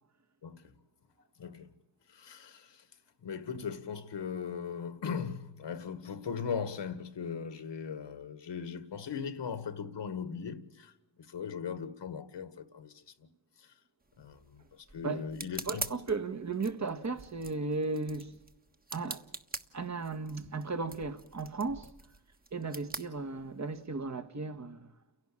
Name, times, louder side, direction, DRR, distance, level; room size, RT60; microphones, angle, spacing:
voice 1, 0.4-0.8 1.4-1.7 2.1-2.9 3.2-10.9 11.2-13.0 13.6-13.7 14.2-15.9, left 6 dB, 70° left, 1.8 m, -39 dB
sound 1, 14.0-23.9, right 2 dB, 20° right, 1.4 m, -45 dB
voice 2, 15.6-18.3 18.9-19.2 19.7-21.9 22.5-24.9, right 3 dB, 40° right, 1.6 m, -35 dB
30.0 x 11.5 x 8.6 m
cardioid pair, 65°, 44 cm